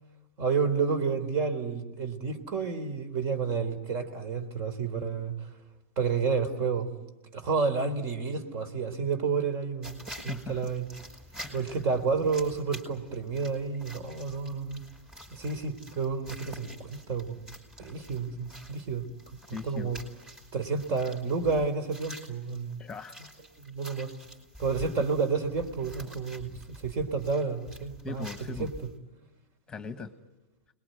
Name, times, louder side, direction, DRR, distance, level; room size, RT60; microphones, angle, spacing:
voice 1, 0.4-5.3 6.0-6.9 7.3-10.0 10.2-10.9 11.5-14.8 15.3-17.4 17.8-19.1 19.6-20.0 20.5-22.8 23.6-24.1 24.6-28.3 28.6-28.7, right 5 dB, 40° right, 11 dB, 3.7 m, -30 dB
sound 1, 9.8-29.0, equal, 10° right, 5.1 m, -48 dB
voice 2, 10.3-10.7 11.4-11.7 19.5-19.9 22.8-23.2 25.0-25.1 28.0-28.7 29.7-30.1, left 5 dB, 15° left, 9 dB, 1.5 m, -39 dB
29.0 x 21.5 x 9.4 m, 1.1 s
hypercardioid pair, 120°, 7 cm